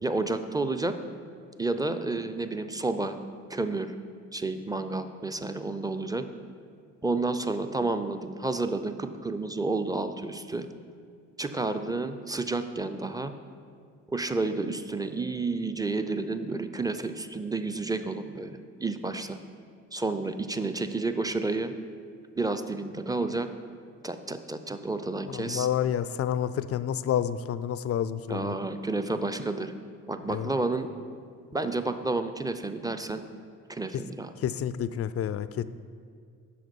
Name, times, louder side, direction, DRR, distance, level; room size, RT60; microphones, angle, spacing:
voice 1, 0.0-1.0 1.6-3.2 3.5-3.9 4.3-6.3 7.0-10.7 11.4-13.3 14.1-19.4 19.9-21.7 22.4-23.5 24.0-25.7 28.3-29.7 30.1-30.9 31.5-33.2 33.7-34.3, right 3 dB, 10° right, 9 dB, 0.5 m, -30 dB
voice 2, 25.3-28.5 30.3-30.5 34.4-35.6, left 9 dB, 40° left, 14 dB, 0.4 m, -29 dB
8.5 x 5.9 x 5.3 m, 2.2 s
hypercardioid pair, 45°, 39 cm